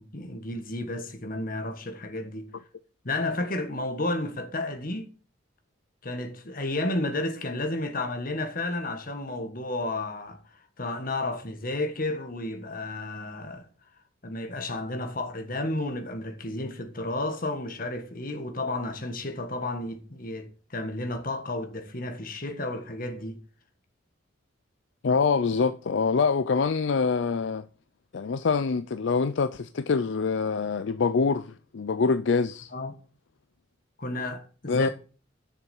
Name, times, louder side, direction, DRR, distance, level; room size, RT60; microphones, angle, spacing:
voice 1, 0.1-2.5 3.0-5.1 6.0-10.4 10.8-13.7 14.2-23.4 32.7-33.0 34.0-34.9, left 2 dB, 45° left, 1.6 m, -32 dB
voice 2, 25.0-27.6 28.1-32.7 34.7-34.9, left 5 dB, 65° left, 0.5 m, -25 dB
7.0 x 7.0 x 7.1 m
head